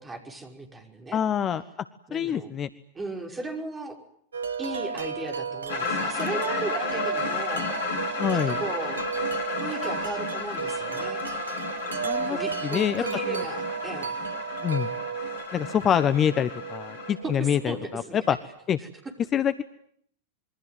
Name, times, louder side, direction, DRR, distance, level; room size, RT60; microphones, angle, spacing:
voice 1, 0.0-1.2 2.1-2.5 2.9-4.0 4.6-7.7 8.3-9.0 9.6-11.2 12.2-14.1 17.2-18.2, right 2 dB, 15° right, 3 dB, 5.6 m, -36 dB
voice 2, 1.1-1.6 2.1-2.7 8.2-8.6 12.0-12.4 12.6-13.4 14.6-14.9 15.5-18.4 18.7-18.8 19.3-19.6, left 9 dB, 25° left, 13 dB, 1.1 m, -25 dB
Wind chime, 4.3-18.3, right 6 dB, 70° right, 1.3 m, -34 dB
sound 1, 5.7-17.1, left 4 dB, 55° left, 6.9 m, -33 dB
27.0 x 23.0 x 9.3 m, 0.69 s
figure-of-eight pair, 90°, 0 cm